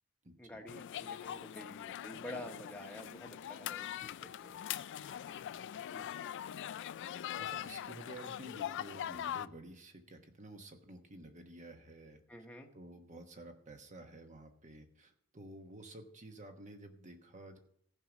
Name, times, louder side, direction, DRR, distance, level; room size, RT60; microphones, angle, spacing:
voice 1, 0.4-4.7 5.9-6.1 12.3-12.7, equal, 5° left, 2 dB, 1.1 m, -49 dB
sound 1, 0.7-9.5, left 10 dB, 55° left, 0.3 m, -42 dB
voice 2, 7.4-12.5 12.7-17.6, right 1 dB, 35° right, 5 dB, 1.2 m, -52 dB
14.5 x 5.4 x 6.0 m, 0.68 s
head